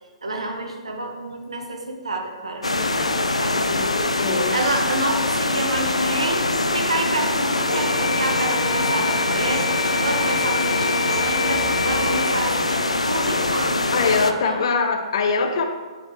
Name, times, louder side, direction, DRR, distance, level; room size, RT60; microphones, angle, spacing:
voice 1, 0.2-3.9 4.3-6.4 6.7-14.7, right 2 dB, 75° right, 3 dB, 0.9 m, -29 dB
sound 1, 2.6-14.3, left 2 dB, 80° left, 0.3 m, -23 dB
voice 2, 3.7-4.7 13.9-15.6, left 4 dB, 50° left, 5 dB, 0.6 m, -23 dB
Bowed string instrument, 7.6-12.5, left 3 dB, 20° left, 0.9 m, -28 dB
8.3 x 3.8 x 3.4 m, 1.4 s
figure-of-eight pair, 115°, 3 cm